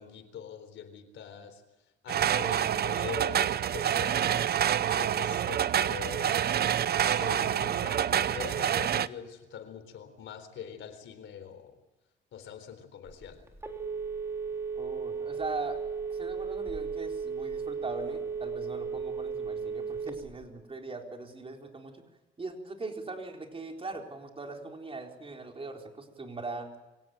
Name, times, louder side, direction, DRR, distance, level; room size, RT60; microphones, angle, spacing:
voice 1, 0.0-1.6 2.0-4.5 4.9-6.4 7.1-11.8 12.3-13.4, left 8 dB, 75° left, 9 dB, 3.8 m, -43 dB
sound 1, 2.1-9.1, right 9 dB, 50° right, 0.7 m, -27 dB
Telephone, 13.1-20.4, right 5 dB, 15° right, 3.7 m, -35 dB
voice 2, 14.8-15.8 16.1-22.0 22.4-26.7, right 3 dB, 30° right, 3 dB, 4.1 m, -40 dB
24.5 x 17.5 x 9.1 m, 1.1 s
cardioid pair, 90°, 20 cm